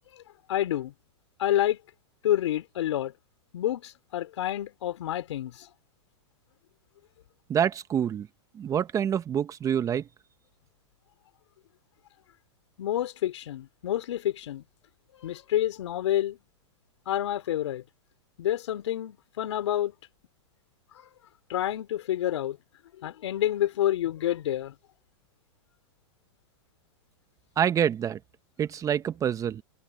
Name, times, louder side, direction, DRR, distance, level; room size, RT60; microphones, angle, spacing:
voice 1, 0.5-0.9 1.4-1.8 2.2-3.1 3.5-5.7 12.8-14.6 15.2-16.4 17.1-17.8 18.4-19.9 21.0-21.1 21.5-22.6 23.0-24.7, left 12 dB, 75° left, 4.5 m, -28 dB
voice 2, 7.5-8.3 8.5-10.1 27.6-28.2 28.6-29.6, right 9 dB, 20° right, 1.3 m, -26 dB
hypercardioid pair, 130°, 15 cm